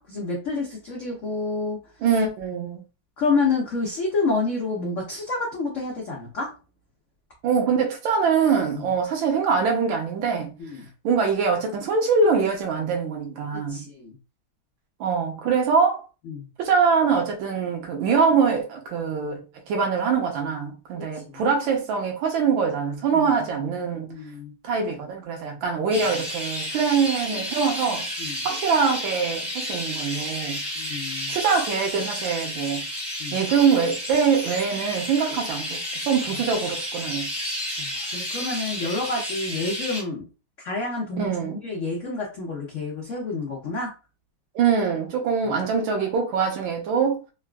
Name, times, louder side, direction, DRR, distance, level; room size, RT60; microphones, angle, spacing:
voice 1, 0.0-1.8 3.2-6.5 8.7-8.8 10.6-10.9 13.7-14.2 16.2-16.5 21.1-21.4 23.1-23.3 24.1-24.5 28.2-28.4 30.8-31.4 33.2-33.4 37.8-40.3 40.6-43.9 45.5-45.6, left 3 dB, 80° left, 0.6 m, -28 dB
voice 2, 2.0-2.8 7.4-10.5 11.0-13.8 15.0-16.0 16.6-19.4 19.7-24.1 24.6-28.1 28.4-30.6 31.3-32.8 33.3-37.3 41.2-41.6 44.5-47.2, right 5 dB, 70° right, 1.5 m, -23 dB
Chirp tweet, 25.9-40.0, equal, 5° right, 0.6 m, -31 dB
3.8 x 2.4 x 2.2 m
omnidirectional pair, 2.3 m